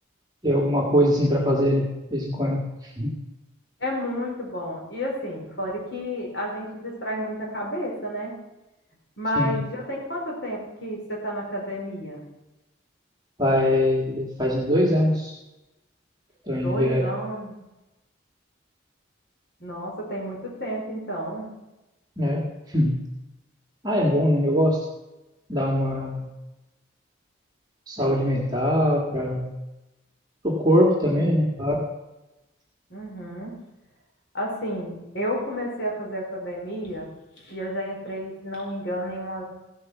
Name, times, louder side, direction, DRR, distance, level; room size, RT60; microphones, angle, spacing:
voice 1, 0.4-2.6 3.0-3.1 9.4-9.6 13.4-15.3 16.5-17.0 22.2-22.5 22.7-23.0 23.8-24.8 25.5-26.3 27.9-29.4 30.4-31.8, equal, 20° right, -2 dB, 1.8 m, -22 dB
voice 2, 3.8-8.3 9.2-12.2 16.5-17.6 19.6-21.5 31.0-31.3 32.9-33.5 34.3-37.1 37.4-39.4, equal, 65° left, -1 dB, 4.4 m, -31 dB
15.5 x 8.3 x 5.9 m, 1.0 s
head